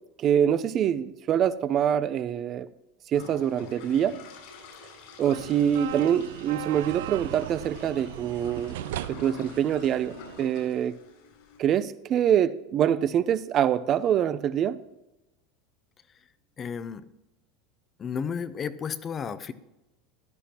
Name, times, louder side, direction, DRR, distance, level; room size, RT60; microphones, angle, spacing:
voice 1, 0.2-2.7 3.1-4.1 5.2-8.7 9.1-11.0 11.6-14.8, right 9 dB, 40° right, 15 dB, 0.7 m, -25 dB
sound 1, 3.1-11.6, left 4 dB, 70° left, 5.1 m, -48 dB
sound 2, 5.3-10.7, right 14 dB, 75° right, 0.4 m, -38 dB
voice 2, 16.6-17.0 18.0-19.5, left 6 dB, 30° left, 13 dB, 0.8 m, -32 dB
15.0 x 11.5 x 3.0 m, 0.97 s
hypercardioid pair, 100°, 0 cm